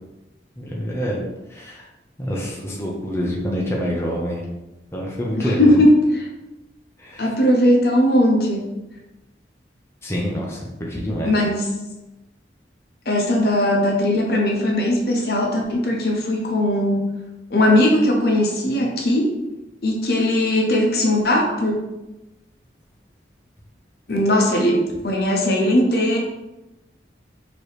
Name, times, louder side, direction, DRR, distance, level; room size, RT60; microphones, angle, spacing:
voice 1, 0.6-1.2 1.5-1.9 2.2-4.5 4.9-5.8 7.0-7.3 10.0-11.3, equal, 15° left, -3 dB, 0.6 m, -26 dB
voice 2, 5.4-6.3 7.2-8.7 11.3-11.8 13.1-17.1 17.5-19.3 19.8-21.7 24.1-26.2, left 1 dB, 60° left, 0 dB, 0.8 m, -19 dB
4.5 x 3.0 x 3.3 m, 0.99 s
head